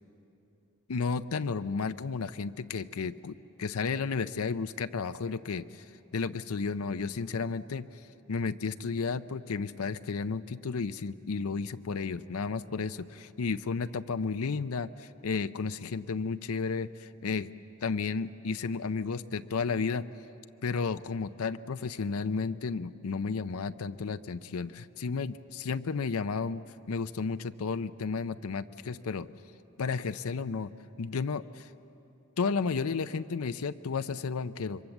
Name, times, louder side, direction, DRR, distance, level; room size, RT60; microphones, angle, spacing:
voice 1, 0.9-5.9 6.1-7.9 8.3-17.5 17.8-20.1 20.6-29.3 29.8-30.7 31.0-31.7 32.4-34.8, left 5 dB, 90° left, 11 dB, 0.6 m, -33 dB
26.5 x 23.5 x 7.2 m, 2.9 s
head